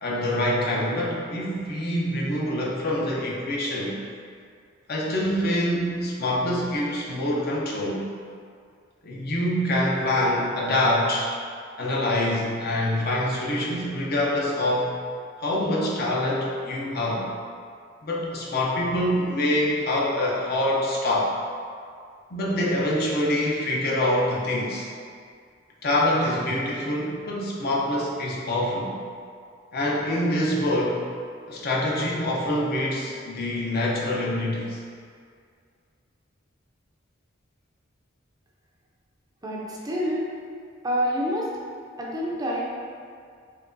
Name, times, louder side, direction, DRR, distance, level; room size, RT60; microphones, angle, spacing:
voice 1, 0.0-4.0 4.9-8.0 9.0-11.3 11.8-14.9 15.4-17.3 18.0-21.3 22.3-24.9 25.8-28.9 29.7-31.0 31.5-34.8, left 1 dB, 55° left, -4 dB, 0.6 m, -25 dB
voice 2, 39.4-40.2 40.8-41.5 42.0-42.6, equal, 20° right, -4 dB, 0.5 m, -27 dB
4.4 x 2.9 x 2.6 m, 2.2 s
head